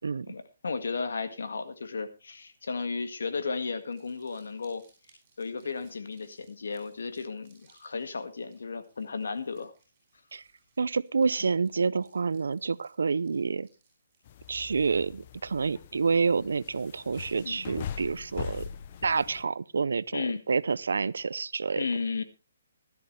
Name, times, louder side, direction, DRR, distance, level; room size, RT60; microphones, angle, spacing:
voice 1, 0.2-4.8 5.4-9.7 11.4-11.5 17.4-17.7 20.1-20.4 21.8-22.2, left 4 dB, 80° left, 1.8 m, -34 dB
Crumpling crinkling, 3.7-15.4, right 4 dB, 25° right, 7.7 m, -67 dB
voice 2, 10.8-13.7 14.5-18.6 19.0-21.8, right 5 dB, 90° right, 0.6 m, -28 dB
sound 1, 14.3-19.4, left 8 dB, 30° left, 0.7 m, -42 dB
16.0 x 12.5 x 3.3 m
hypercardioid pair, 175°, 0 cm